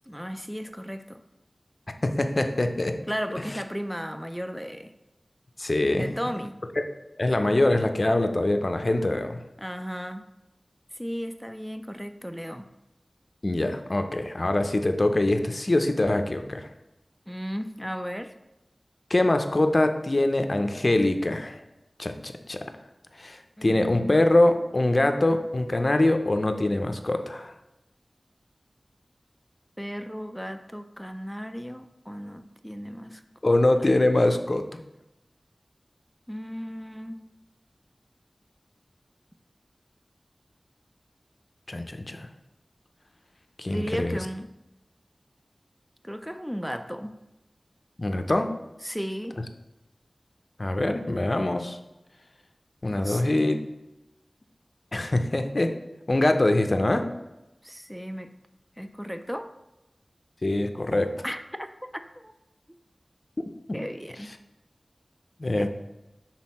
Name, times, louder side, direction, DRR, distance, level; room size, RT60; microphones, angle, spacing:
voice 1, 0.1-1.2 3.1-4.9 5.9-6.6 9.6-10.3 10.9-12.7 17.3-18.3 23.6-24.2 29.8-34.0 36.3-37.2 43.7-44.5 46.0-47.1 48.8-49.4 52.9-53.5 57.6-58.3 58.8-59.5 61.2-61.7 62.2-62.3 63.7-64.3 65.6-65.7, equal, ahead, 8 dB, 0.4 m, -35 dB
voice 2, 2.0-3.0 5.6-6.1 6.8-6.9 7.2-9.4 13.4-16.7 19.1-21.6 22.0-22.6 23.2-27.5 33.4-34.6 41.7-42.3 43.6-44.2 48.0-48.5 50.6-51.8 52.8-53.6 54.9-55.8 56.1-57.1 60.4-61.1 65.4-65.7, left 1 dB, 45° left, 7 dB, 0.5 m, -23 dB
6.2 x 4.0 x 4.2 m, 0.96 s
wide cardioid pair, 65°, 0 cm